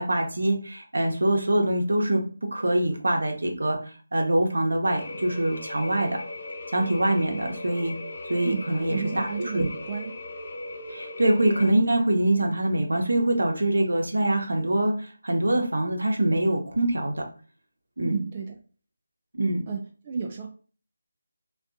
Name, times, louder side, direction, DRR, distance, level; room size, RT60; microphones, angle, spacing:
voice 1, 0.0-6.2 6.7-7.9 8.3-9.3 9.5-9.7 10.9-17.1 18.0-18.2 19.3-19.6, right 1 dB, 75° right, 3 dB, 0.8 m, -24 dB
sound 1, 4.9-11.7, left 2 dB, 50° left, 0.9 m, -38 dB
voice 2, 8.4-10.1 18.0-18.6 19.7-20.5, right 5 dB, 30° right, 1 dB, 0.3 m, -32 dB
3.4 x 2.4 x 2.5 m, 0.39 s
figure-of-eight pair, 160°, 0 cm